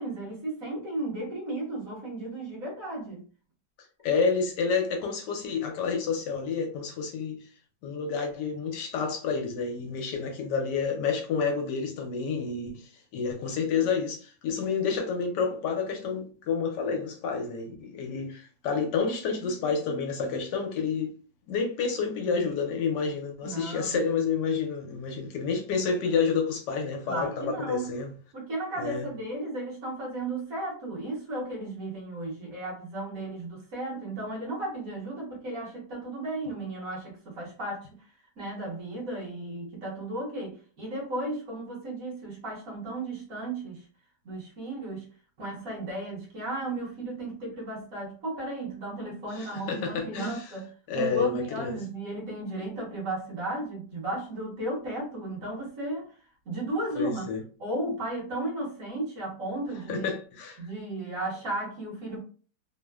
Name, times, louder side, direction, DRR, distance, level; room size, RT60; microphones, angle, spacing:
voice 1, 0.0-3.2 23.4-24.0 27.1-27.9 28.3-37.9 38.4-43.8 44.2-45.1 45.4-50.7 51.0-56.1 56.5-57.3 57.6-60.0 60.6-62.2, right 2 dB, 55° right, 1.2 m, -34 dB
voice 2, 4.0-7.4 7.8-21.1 21.5-28.1 28.8-29.1 49.3-50.4 50.9-51.8 56.9-57.4 59.9-60.6, left 5 dB, 75° left, 1.2 m, -29 dB
3.1 x 2.1 x 2.2 m
omnidirectional pair, 1.9 m